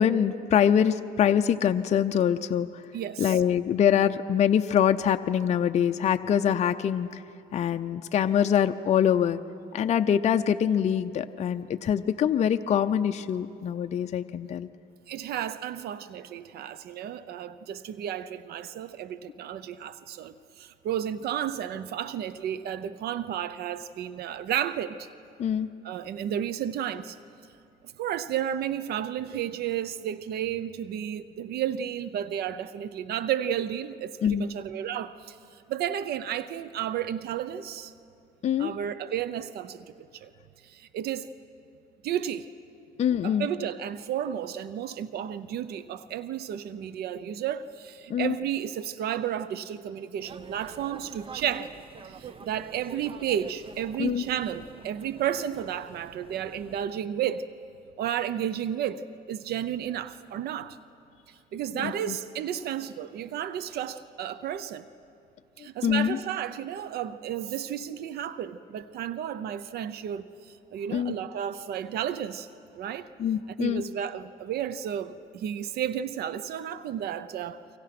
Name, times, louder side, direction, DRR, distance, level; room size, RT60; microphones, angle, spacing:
voice 1, 0.0-2.8 3.2-7.2 7.5-9.4 9.7-14.7 25.4-25.7 34.2-34.5 38.4-38.7 43.0-43.5 48.1-48.4 54.0-54.2 61.8-62.2 65.8-66.2 70.9-71.1 73.2-73.8, left 9 dB, 40° left, 7 dB, 0.6 m, -24 dB
voice 2, 2.9-3.3 15.1-25.1 25.8-27.2 28.0-35.4 35.7-37.9 38.6-40.3 40.6-41.3 42.0-42.5 43.2-51.7 52.0-57.5 58.0-59.0 59.3-60.8 61.3-64.9 65.6-72.5 72.7-73.1 73.6-77.6, right 10 dB, 70° right, 14 dB, 0.8 m, -32 dB
sound 1, 50.2-56.9, right 6 dB, 35° right, 0.8 m, -46 dB
29.5 x 24.5 x 6.0 m, 2.7 s
cardioid pair, 110°, 17 cm